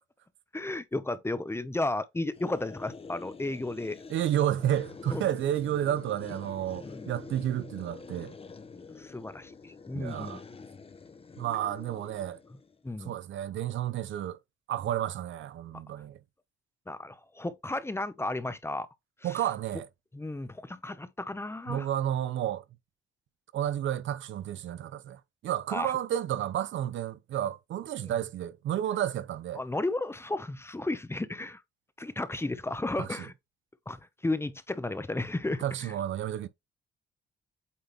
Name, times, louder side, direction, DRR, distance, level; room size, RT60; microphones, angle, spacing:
voice 1, 0.5-4.0 5.1-5.2 6.8-7.1 9.0-10.4 12.8-13.1 16.9-18.9 19.2-19.4 20.1-21.9 25.7-26.0 29.5-31.6 32.0-33.3 33.9-35.9, left 2 dB, 10° left, 0.9 m, -34 dB
sound 1, 2.3-12.8, left 4 dB, 30° left, 1.1 m, -47 dB
voice 2, 4.1-8.3 9.9-10.4 11.4-12.4 13.0-14.4 14.7-16.2 19.2-19.9 21.7-22.6 23.5-29.6 33.0-33.1 35.6-36.5, right 11 dB, 75° right, 0.8 m, -31 dB
8.5 x 3.8 x 3.1 m
cardioid pair, 90°, 20 cm